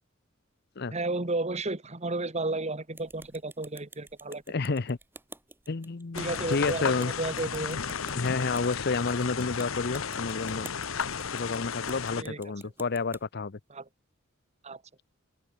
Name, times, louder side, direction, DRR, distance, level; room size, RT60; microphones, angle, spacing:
voice 1, 0.9-4.4 6.2-7.8 12.2-12.5 13.7-13.9 14.6-14.8, right 2 dB, 35° right, 1.8 m, -33 dB
sound 1, 2.9-13.2, right 2 dB, 10° right, 2.6 m, -50 dB
voice 2, 4.5-5.0 5.7-7.1 8.1-10.7 11.3-13.6, left 4 dB, 55° left, 0.7 m, -30 dB
sound 2, 6.1-12.2, left 6 dB, 90° left, 1.1 m, -34 dB
open air
head